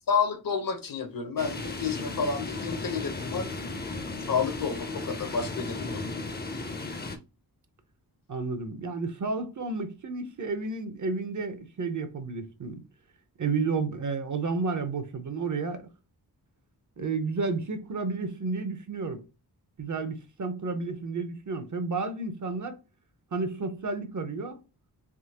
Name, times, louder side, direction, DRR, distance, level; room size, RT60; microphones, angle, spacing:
voice 1, 0.1-3.5 4.3-6.0, left 5 dB, 60° left, 0.8 m, -30 dB
sound 1, 1.4-7.2, left 2 dB, 25° left, 0.5 m, -35 dB
voice 2, 8.3-12.8 13.4-15.9 17.0-19.2 19.8-22.8 23.3-24.6, right 4 dB, 50° right, 0.6 m, -31 dB
3.6 x 2.8 x 2.8 m
wide cardioid pair, 130°, 39 cm